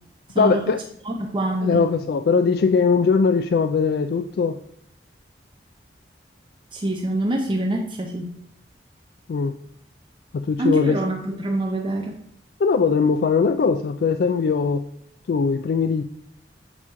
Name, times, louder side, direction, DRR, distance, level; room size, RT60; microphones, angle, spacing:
voice 1, 0.4-0.8 1.6-4.6 9.3-9.5 10.3-11.0 12.6-14.8 15.3-16.0, left 5 dB, 60° left, 8 dB, 0.3 m, -20 dB
voice 2, 1.0-1.8 6.7-8.3 10.6-12.2, right 1 dB, 25° right, 1 dB, 0.6 m, -25 dB
8.0 x 3.0 x 6.2 m, 0.68 s
head